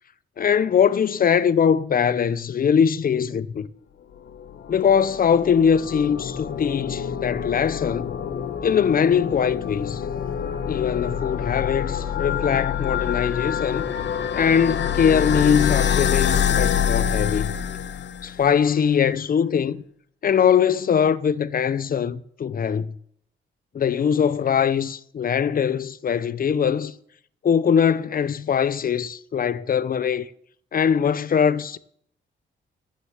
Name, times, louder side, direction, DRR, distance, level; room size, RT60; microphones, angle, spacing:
voice 1, 0.4-3.7 4.7-8.1 8.6-10.0 10.7-13.9 14.3-17.5 18.2-19.8 20.2-22.9 23.7-26.9 27.4-30.3 30.7-31.8, left 7 dB, 45° left, 0.6 m, -21 dB
sound 1, 4.3-18.5, left 8 dB, 65° left, 0.9 m, -26 dB
9.5 x 6.4 x 7.2 m
cardioid pair, 85°, 21 cm